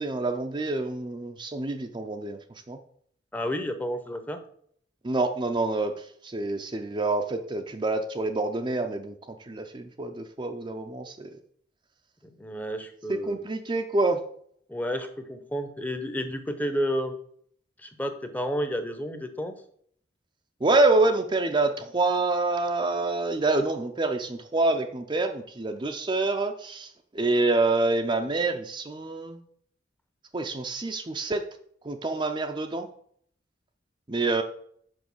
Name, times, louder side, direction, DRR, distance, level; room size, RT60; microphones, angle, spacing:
voice 1, 0.0-2.4 2.7-2.8 5.0-5.9 6.2-9.1 9.5-11.3 13.1-14.2 20.6-26.9 27.1-29.4 30.3-31.4 31.8-32.9 34.1-34.4, right 2 dB, 25° right, 5 dB, 0.6 m, -26 dB
voice 2, 3.3-4.4 12.2-13.4 14.7-17.2 17.8-19.5, equal, 10° left, 8 dB, 0.8 m, -31 dB
6.3 x 5.3 x 7.0 m, 0.64 s
head